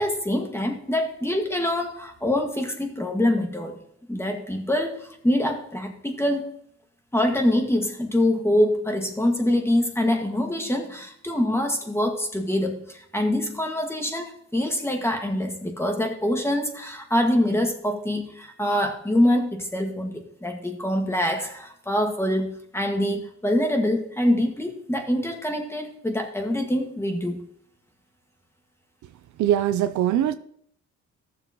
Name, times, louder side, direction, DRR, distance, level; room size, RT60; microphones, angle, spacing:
voice 1, 0.0-3.8 4.1-6.6 7.1-27.4, left 1 dB, 10° left, 1.8 m, -25 dB
voice 2, 29.4-30.3, right 11 dB, 75° right, 0.6 m, -21 dB
14.5 x 7.0 x 3.0 m
cardioid pair, 90°, 30 cm